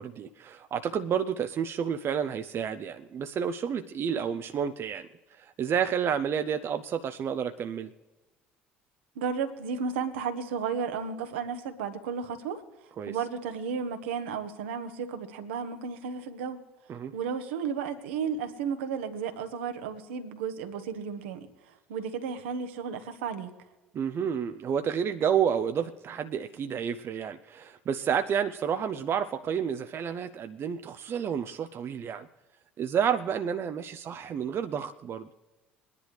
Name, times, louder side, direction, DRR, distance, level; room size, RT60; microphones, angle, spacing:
voice 1, 0.0-7.9 13.0-13.2 16.9-17.1 23.9-32.3 32.8-35.3, right 8 dB, 40° right, 8 dB, 0.6 m, -30 dB
voice 2, 9.1-12.6 13.1-16.6 17.1-21.5 21.9-23.5, right 6 dB, 75° right, 7 dB, 1.2 m, -33 dB
22.0 x 10.5 x 3.3 m, 1.2 s
figure-of-eight pair, 60°, 6 cm